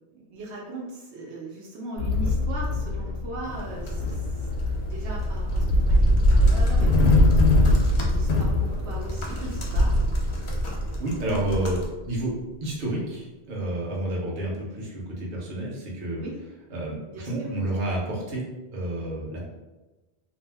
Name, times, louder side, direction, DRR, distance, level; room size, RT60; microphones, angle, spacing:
voice 1, 0.1-4.2 4.8-7.6 8.0-9.9 16.2-16.4 17.1-17.5, right 2 dB, 80° right, -3 dB, 0.9 m, -39 dB
sound 1, 2.0-12.2, left 1 dB, 75° left, 0.8 m, -22 dB
sound 2, 3.4-11.9, equal, 45° left, 0.4 m, -35 dB
voice 2, 11.0-12.3 12.6-16.2 16.7-18.4 18.7-19.6, right 1 dB, 55° right, -3 dB, 0.9 m, -30 dB
2.5 x 2.1 x 3.3 m, 1.1 s
omnidirectional pair, 1.1 m